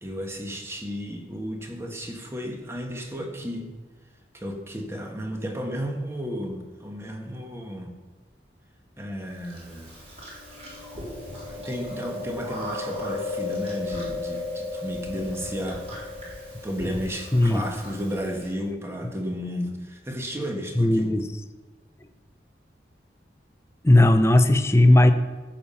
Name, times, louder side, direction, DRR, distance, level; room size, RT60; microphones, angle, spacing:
voice 1, 0.0-3.7 4.3-7.9 9.0-10.0 11.5-15.8 16.3-21.2, equal, 15° right, 2 dB, 1.5 m, -33 dB
Chewing mastication, 9.5-18.5, left 2 dB, 35° right, 4.0 m, -35 dB
voice 2, 17.3-17.6 20.8-21.2 23.8-25.1, left 1 dB, 15° left, 8 dB, 0.7 m, -17 dB
14.5 x 7.3 x 5.7 m, 1.3 s
head